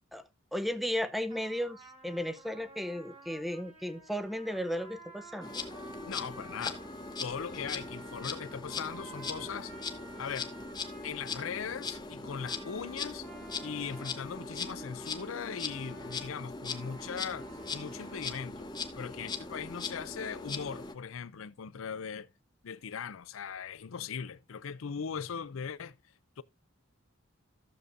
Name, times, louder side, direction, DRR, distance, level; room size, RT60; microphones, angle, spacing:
voice 1, 0.5-5.5, equal, ahead, 0.6 m, -35 dB
sound 1, 1.3-18.5, right 2 dB, 30° right, 2.0 m, -53 dB
Insect, 5.4-20.9, left 4 dB, 20° left, 1.0 m, -40 dB
voice 2, 6.1-6.8 7.2-9.7 10.2-10.6 11.0-13.3 13.6-18.7 19.0-22.3 22.6-26.0 26.4-26.5, left 6 dB, 85° left, 0.5 m, -39 dB
14.5 x 6.8 x 2.5 m
head